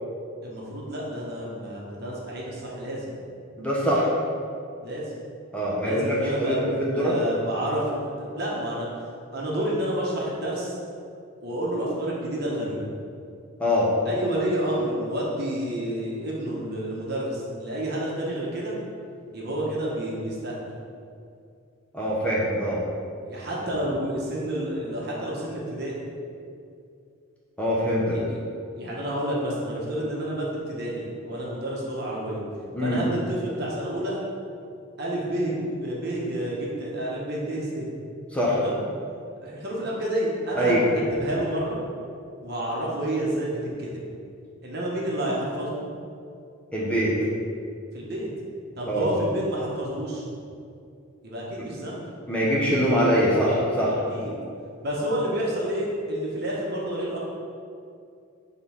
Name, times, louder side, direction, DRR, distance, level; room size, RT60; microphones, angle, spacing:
voice 1, 0.4-3.1 4.8-5.1 5.8-10.8 11.4-12.9 14.0-18.8 19.3-20.6 23.2-25.9 28.1-28.4 28.8-32.4 32.8-34.2 35.0-37.9 38.6-38.8 39.4-41.8 42.4-43.9 44.6-45.8 47.9-48.3 48.8-50.3 51.2-52.0 53.9-54.4 54.8-57.2, right 1 dB, 50° right, -5 dB, 1.3 m, -29 dB
voice 2, 3.6-4.1 5.5-7.1 13.6-13.9 21.9-22.8 27.6-28.2 32.7-33.0 38.3-38.6 40.5-40.8 46.7-47.1 48.9-49.1 52.3-53.9, equal, 5° left, -7 dB, 1.0 m, -23 dB
5.5 x 4.1 x 5.6 m, 2.5 s
head